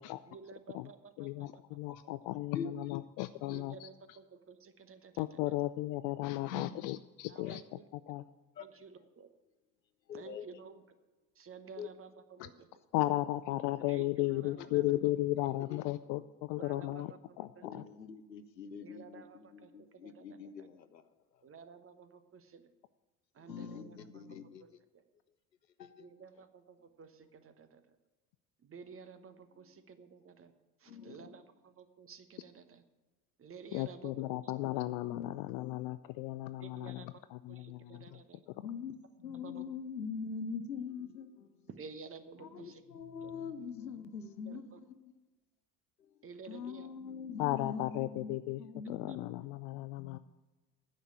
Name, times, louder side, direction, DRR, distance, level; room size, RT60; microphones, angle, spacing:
voice 1, 0.3-1.6 3.5-5.2 7.3-7.9 8.6-9.3 10.1-10.8 11.4-12.7 13.8-14.8 16.5-17.8 18.8-20.7 21.4-22.6 23.3-24.4 26.0-27.8 28.6-30.5 30.8-32.8 33.4-34.2 36.6-37.1 37.5-38.4 39.3-39.6 41.8-42.8 43.2-43.3 44.5-44.8 46.2-46.9 49.1-49.2, right 5 dB, 25° right, 11 dB, 1.1 m, -52 dB
voice 2, 1.2-4.2 5.2-8.2 12.4-12.5 12.9-17.9 33.7-38.2 47.4-48.6 48.9-50.2, left 17 dB, 45° left, 14 dB, 0.4 m, -35 dB
voice 3, 10.1-10.5 11.8-11.9 15.7-15.8 17.6-21.0 23.4-24.7 25.8-26.1 26.4-26.5 30.9-31.4 34.6-34.7 35.1-35.8 38.1-38.2 38.6-41.5 42.4-45.1 46.5-49.4 50.0-50.2, left 6 dB, 90° left, 13 dB, 0.7 m, -43 dB
9.9 x 6.7 x 8.9 m, 1.2 s
figure-of-eight pair, 65°, 49 cm